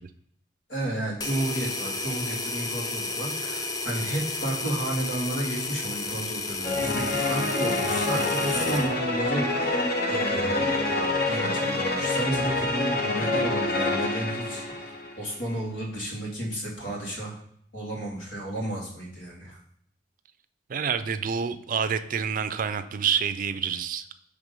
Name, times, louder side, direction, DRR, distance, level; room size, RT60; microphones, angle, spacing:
voice 1, 0.7-17.4 17.7-19.6, right 1 dB, 90° left, -3 dB, 2.3 m, -32 dB
sound 1, 1.2-8.9, left 2 dB, 20° left, 0.5 m, -32 dB
sound 2, 6.6-15.2, left 2 dB, 55° left, 0.9 m, -27 dB
voice 2, 20.7-24.0, right 7 dB, 50° right, 11 dB, 0.4 m, -27 dB
6.1 x 3.4 x 5.3 m, 0.69 s
head